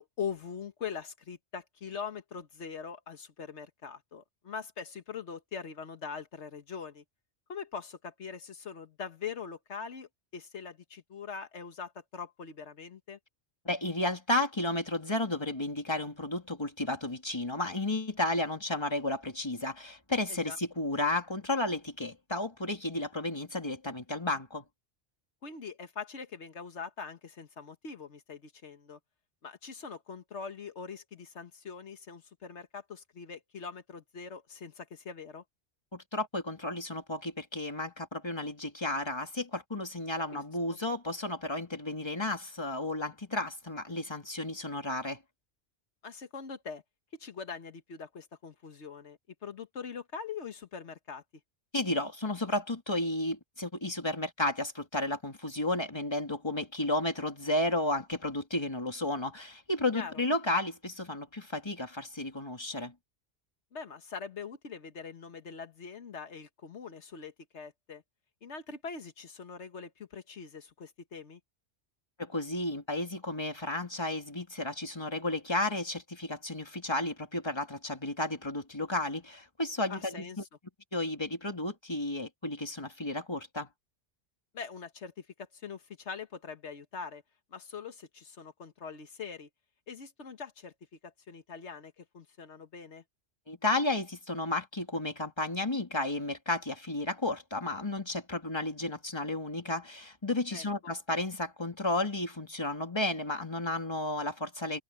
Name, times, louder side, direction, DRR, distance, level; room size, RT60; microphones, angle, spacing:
voice 1, 0.0-7.0 7.5-13.2 20.3-20.6 25.4-29.0 29.4-35.4 40.3-40.4 46.0-46.8 47.2-51.2 59.9-60.1 63.7-68.0 68.4-71.4 79.9-80.5 84.5-87.2 87.5-89.5 89.9-90.7 91.0-93.0 100.5-100.6, left 6 dB, 85° left, 1.7 m, -42 dB
voice 2, 13.6-24.7 35.9-45.2 51.7-62.9 72.2-80.3 80.9-83.7 93.5-104.8, left 2 dB, 25° left, 2.6 m, -33 dB
omnidirectional pair, 1.1 m